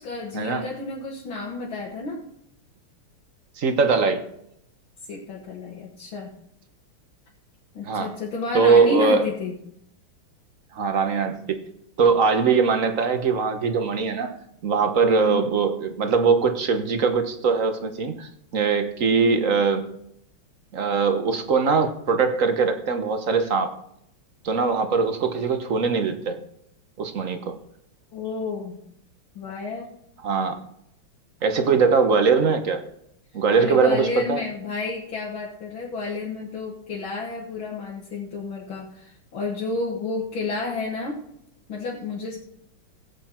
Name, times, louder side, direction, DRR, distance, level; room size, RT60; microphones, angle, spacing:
voice 1, 0.0-2.2 5.1-6.4 7.7-9.6 15.2-15.5 28.1-28.8 29.4-29.9 33.6-41.2 41.7-42.4, left 3 dB, 70° left, -4 dB, 2.4 m, -31 dB
voice 2, 3.6-4.2 7.9-8.1 8.5-9.3 10.7-11.6 12.0-14.4 14.6-19.9 20.7-23.8 24.4-26.4 27.0-27.6 30.2-30.6 31.4-32.8 33.3-34.4, right 5 dB, 45° right, 7 dB, 1.3 m, -21 dB
16.5 x 8.1 x 4.4 m, 0.75 s
omnidirectional pair, 2.3 m